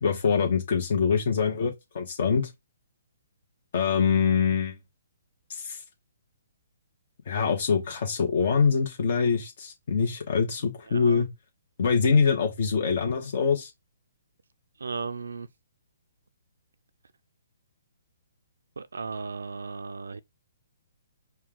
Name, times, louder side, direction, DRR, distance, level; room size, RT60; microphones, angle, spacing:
voice 1, 0.0-2.5 3.7-4.7 5.5-5.8 7.3-11.3 11.8-13.7, left 6 dB, 55° left, 1.0 m, -24 dB
voice 2, 10.9-11.2 14.8-15.5 18.8-20.2, right 4 dB, 85° right, 0.3 m, -35 dB
4.5 x 2.3 x 3.8 m
hypercardioid pair, 150°, 0 cm